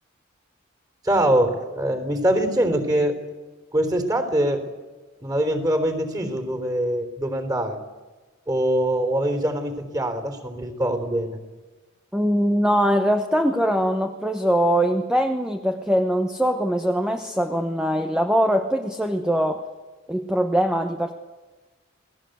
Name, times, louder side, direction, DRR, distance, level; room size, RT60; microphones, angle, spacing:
voice 1, 1.0-3.3 3.7-4.6 5.2-7.8 8.5-11.4, right 1 dB, 20° right, 7 dB, 3.7 m, -23 dB
voice 2, 12.1-19.6 20.1-21.1, equal, 5° right, 5 dB, 1.1 m, -22 dB
29.0 x 19.5 x 8.0 m, 1.3 s
head